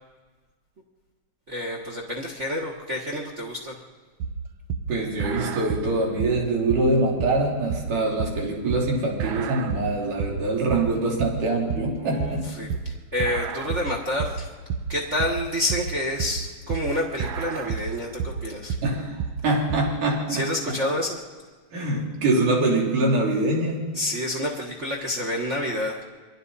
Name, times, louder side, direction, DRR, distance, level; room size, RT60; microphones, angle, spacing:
voice 1, 1.5-3.8 12.0-14.5 14.9-18.8 20.3-21.2 23.9-26.0, left 1 dB, 45° right, 0 dB, 0.9 m, -28 dB
sound 1, 4.2-20.0, right 6 dB, 70° right, 1.5 m, -30 dB
voice 2, 4.9-12.5 18.8-20.5 21.7-23.9, right 2 dB, 85° right, -3 dB, 4.9 m, -24 dB
28.0 x 22.5 x 4.1 m, 1.4 s
omnidirectional pair, 3.5 m